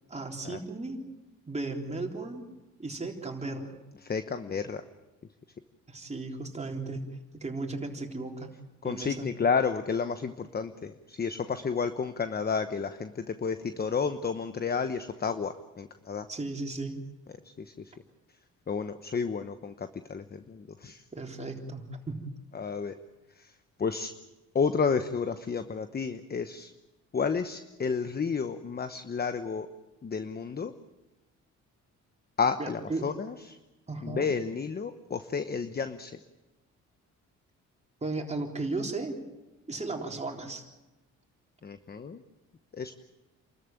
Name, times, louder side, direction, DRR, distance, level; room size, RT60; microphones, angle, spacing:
voice 1, 0.1-1.0 1.5-2.4 2.8-3.8 5.9-8.5 8.8-9.3 16.3-17.0 21.1-22.3 32.6-33.1 33.9-34.3 38.0-39.2 39.7-40.7, right 3 dB, 20° right, 2 dB, 3.8 m, -35 dB
voice 2, 4.1-4.8 8.8-10.9 11.2-13.1 13.4-16.2 18.7-19.7 20.1-20.2 20.8-20.9 22.6-22.9 23.8-24.1 24.5-26.7 27.1-29.7 30.0-30.7 32.4-33.1 34.0-36.1 41.6-42.2 42.8-42.9, left 5 dB, 30° left, 10 dB, 1.0 m, -30 dB
28.5 x 14.0 x 9.1 m, 1.1 s
cardioid pair, 90°, 30 cm